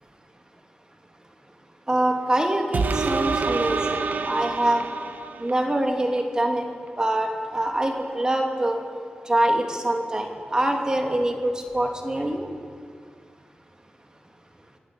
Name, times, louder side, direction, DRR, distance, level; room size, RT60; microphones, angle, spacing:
voice 1, 1.9-4.8 5.4-6.6 7.0-8.8 9.3-12.5, right 1 dB, 25° right, 3 dB, 2.9 m, -24 dB
sound 1, 2.7-5.7 6.2-6.3, right 4 dB, 65° right, 1.4 m, -27 dB
28.5 x 11.5 x 8.9 m, 2.2 s
cardioid pair, 80°, 3 cm